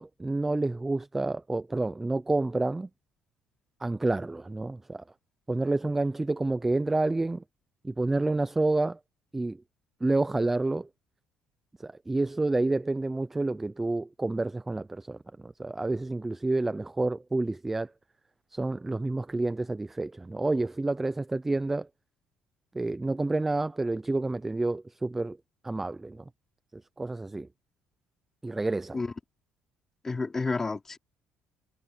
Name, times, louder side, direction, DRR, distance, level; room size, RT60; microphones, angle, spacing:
voice 1, 0.0-2.9 3.8-5.0 5.5-7.4 7.8-9.0 9.3-9.6 10.0-10.9 11.8-17.9 18.5-21.9 22.7-25.4 25.6-26.2 26.7-27.5 28.4-29.0, right 2 dB, 10° right, 0.4 m, -29 dB
voice 2, 30.0-31.0, left 3 dB, 15° left, 3.1 m, -30 dB
cardioid pair, 170°, 3 cm